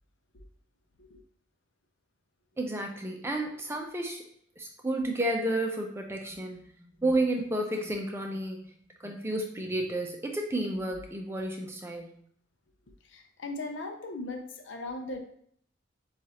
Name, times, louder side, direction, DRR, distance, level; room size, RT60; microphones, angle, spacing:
voice 1, 2.6-4.2 4.6-8.7 9.0-12.2, right 1 dB, 10° right, 2 dB, 0.5 m, -31 dB
voice 2, 13.0-15.2, left 2 dB, 70° left, 4 dB, 0.6 m, -38 dB
7.2 x 2.5 x 2.9 m, 0.65 s
head